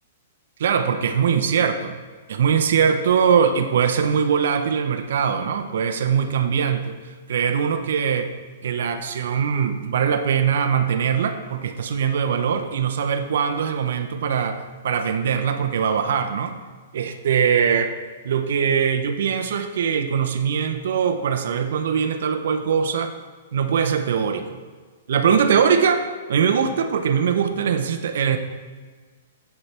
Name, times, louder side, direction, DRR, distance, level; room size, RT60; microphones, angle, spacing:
voice 1, 0.6-2.0 2.3-6.8 7.3-8.3 8.6-16.6 16.9-17.9 18.2-23.1 23.5-24.6 25.1-26.0 26.3-28.4, right 7 dB, 70° right, 7 dB, 0.6 m, -21 dB
7.9 x 7.1 x 3.3 m, 1.5 s
hypercardioid pair, 155°, 0 cm